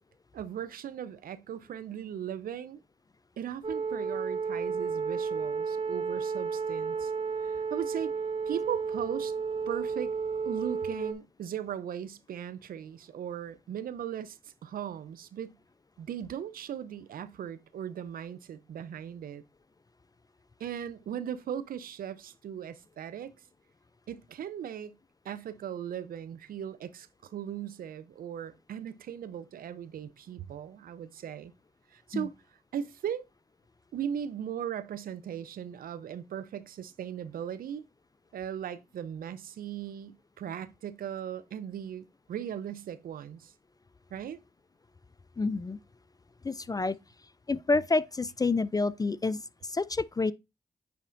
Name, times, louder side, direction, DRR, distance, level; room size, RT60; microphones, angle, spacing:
voice 1, 0.3-2.8 3.4-7.1 7.4-8.1 8.5-9.3 9.7-10.1 10.5-15.6 16.0-19.4 20.6-23.3 24.1-25.0 25.2-31.5 31.9-32.3 32.7-33.2 33.9-37.9 38.3-43.5 44.1-44.4, right 9 dB, 75° right, 0.5 m, -38 dB
sound 1, 3.6-11.1, right 5 dB, 35° right, 0.9 m, -32 dB
voice 2, 45.4-45.8 46.4-47.0 47.5-50.3, left 3 dB, 25° left, 0.4 m, -28 dB
9.3 x 4.1 x 2.5 m
supercardioid pair, 45°, 15 cm